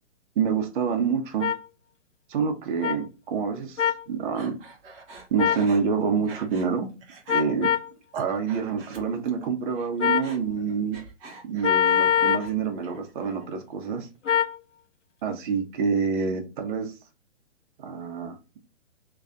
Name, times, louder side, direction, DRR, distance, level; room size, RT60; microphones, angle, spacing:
voice 1, 0.4-1.5 2.3-4.6 5.3-6.9 7.3-7.7 8.1-11.0 11.4-14.1 15.2-16.9 17.8-18.4, right 6 dB, 45° right, 1.1 m, -27 dB
sound 1, 1.4-1.6 2.8-3.0 3.8-4.0 5.4-5.7 7.3-7.9 10.0-10.3 11.6-12.5 14.3-14.6, left 9 dB, 80° left, 0.7 m, -23 dB
Breathing, 4.3-6.7 7.0-7.4 7.9-9.4 9.7-12.5 12.8-13.5, right 3 dB, 20° right, 0.8 m, -46 dB
3.2 x 2.6 x 3.5 m
hypercardioid pair, 130°, 36 cm